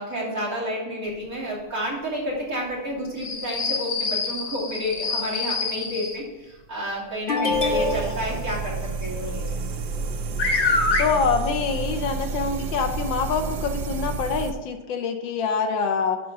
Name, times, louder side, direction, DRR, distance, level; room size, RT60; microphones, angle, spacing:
voice 1, 0.0-9.4, equal, 45° right, -6 dB, 3.1 m, -30 dB
sound 1, 3.2-6.2 7.3-8.3 10.0-10.1 10.4-11.0 12.2-12.3 12.8-12.9 13.7-13.8, left 3 dB, 40° left, 1.4 m, -25 dB
voice 2, 7.3-7.6 11.0-16.2, left 5 dB, 80° left, 5 dB, 1.5 m, -25 dB
sound 2, 7.5-14.5, right 4 dB, 65° right, 1.2 m, -30 dB
11.0 x 3.8 x 5.9 m, 1.1 s
omnidirectional pair, 2.1 m